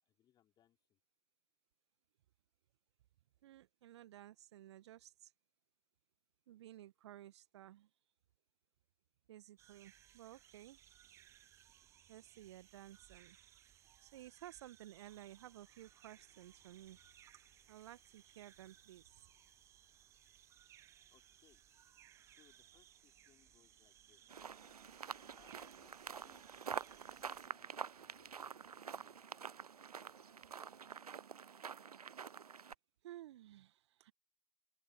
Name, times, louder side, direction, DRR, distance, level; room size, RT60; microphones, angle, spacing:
voice 1, 0.0-1.0 21.1-21.6 22.3-24.3 25.2-26.6 27.0-29.4, left 11 dB, 20° left, 4.7 m, -73 dB
voice 2, 3.4-5.3 6.5-7.9 9.3-10.8 12.1-13.4 14.0-17.0 17.7-19.3 33.0-34.1, right 13 dB, 45° right, 1.3 m, -55 dB
sound 1, 9.6-27.5, right 11 dB, 15° right, 0.5 m, -65 dB
sound 2, 15.1-30.9, left 14 dB, 45° left, 4.0 m, -79 dB
sound 3, 24.3-32.7, right 7 dB, 70° right, 0.7 m, -47 dB
open air
figure-of-eight pair, 120°, 20 cm